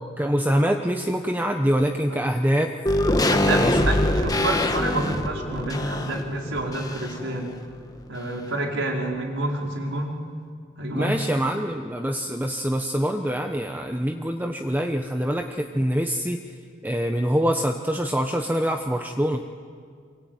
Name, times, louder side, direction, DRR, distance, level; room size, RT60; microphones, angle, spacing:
voice 1, 0.0-2.7 3.6-3.9 10.9-16.4 16.8-19.4, equal, 10° right, 4 dB, 1.0 m, -25 dB
sound 1, 2.9-7.3 7.6-7.7, left 1 dB, 20° left, 1.5 m, -24 dB
voice 2, 3.3-7.5 8.1-10.2 10.8-11.2, right 1 dB, 80° right, 0 dB, 5.0 m, -28 dB
26.0 x 24.5 x 9.4 m, 2.1 s
head